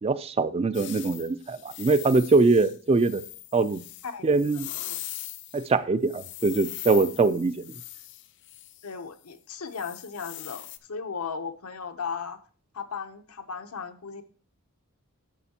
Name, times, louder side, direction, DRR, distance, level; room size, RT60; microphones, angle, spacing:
voice 1, 0.0-3.2 3.5-3.8 4.2-4.7 5.5-7.6, right 3 dB, 25° right, 15 dB, 0.3 m, -23 dB
sound 1, 0.7-5.7 6.1-8.9 9.7-10.8, left 15 dB, 55° left, 0.5 m, -41 dB
voice 2, 8.8-12.4 12.7-14.2, left 5 dB, 85° left, 8 dB, 0.8 m, -36 dB
11.0 x 7.2 x 2.9 m, 0.42 s
head